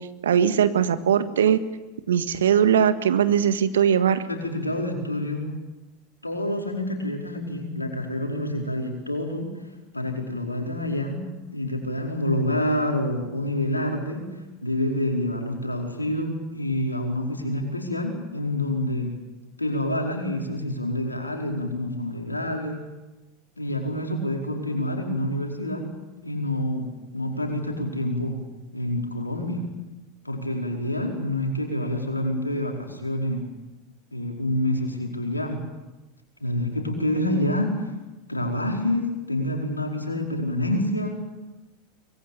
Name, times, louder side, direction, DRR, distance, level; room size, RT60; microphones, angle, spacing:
voice 1, 0.2-1.6 2.1-4.2, right 8 dB, 70° right, 11 dB, 1.7 m, -20 dB
voice 2, 4.3-5.5 6.2-9.5 9.9-11.2 11.5-14.3 14.6-19.1 19.6-22.8 23.6-25.9 26.2-28.4 28.7-29.6 30.2-33.4 34.1-35.6 36.4-37.9 38.3-41.2, left 1 dB, 90° left, 1 dB, 4.8 m, -27 dB
24.0 x 22.0 x 8.7 m, 1.1 s
figure-of-eight pair, 85°, 0 cm